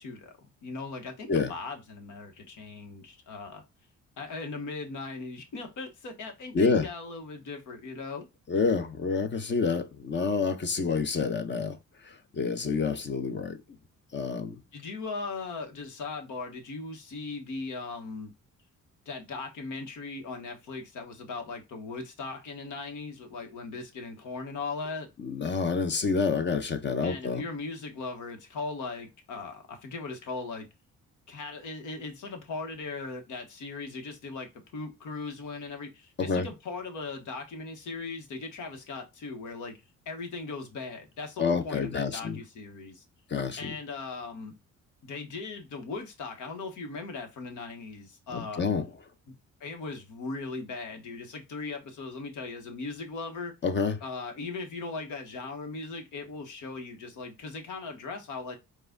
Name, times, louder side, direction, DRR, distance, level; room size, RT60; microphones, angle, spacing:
voice 1, 0.0-3.6 4.2-8.3 14.7-18.3 19.0-25.1 27.0-30.7 31.3-39.8 40.0-43.0 43.6-44.5 45.0-48.7 49.6-53.5 54.0-58.6, left 3 dB, 80° left, 1.3 m, -38 dB
voice 2, 6.5-6.9 8.5-11.8 12.0-13.6 14.1-14.6 25.2-27.4 36.2-36.5 41.4-42.4 43.3-43.8 48.3-48.9 53.6-54.0, left 5 dB, 35° left, 0.8 m, -28 dB
4.7 x 2.5 x 3.8 m
cardioid pair, 90°, 30 cm